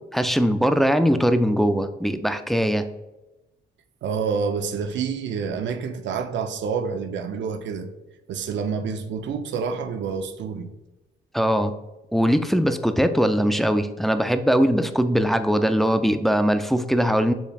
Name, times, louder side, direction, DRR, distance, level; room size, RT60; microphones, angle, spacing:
voice 1, 0.1-2.9 11.3-11.7 12.1-17.3, equal, ahead, 0.3 m, -21 dB
voice 2, 4.0-7.9 8.3-10.7, right 6 dB, 65° right, 0.6 m, -28 dB
7.1 x 3.2 x 2.3 m
cardioid pair, 90°, 20 cm